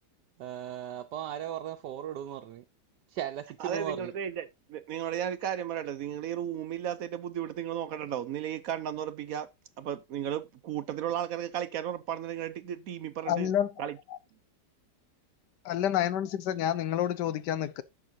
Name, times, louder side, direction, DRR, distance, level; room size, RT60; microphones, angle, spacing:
voice 1, 0.4-2.6 3.1-4.1, right 11 dB, 85° right, 1.3 m, -37 dB
voice 2, 3.6-9.5 9.8-13.5 13.8-14.0, right 10 dB, 65° right, 0.9 m, -34 dB
voice 3, 13.3-13.7 15.7-17.8, left 10 dB, 90° left, 1.4 m, -28 dB
10.5 x 7.4 x 2.6 m
omnidirectional pair, 1.8 m